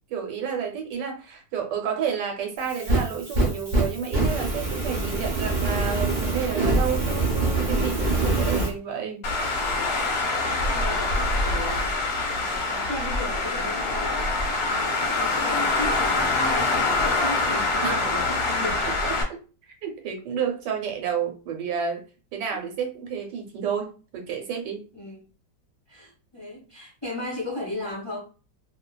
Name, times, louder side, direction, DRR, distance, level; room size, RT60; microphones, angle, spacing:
voice 1, 0.1-9.3 17.7-18.1 18.8-19.4 19.8-22.0 22.3-24.8, right 7 dB, 80° right, 1.3 m, -30 dB
Fire, 2.6-8.7, right 2 dB, 45° right, 0.6 m, -24 dB
Traffic noise roadway noise, 9.2-19.2, left 3 dB, 65° left, 1.0 m, -25 dB
voice 2, 10.5-11.9 12.3-14.3 14.7-18.9 24.9-25.2 25.9-28.2, left 1 dB, 20° left, 1.0 m, -36 dB
2.7 x 2.4 x 2.2 m
omnidirectional pair, 1.9 m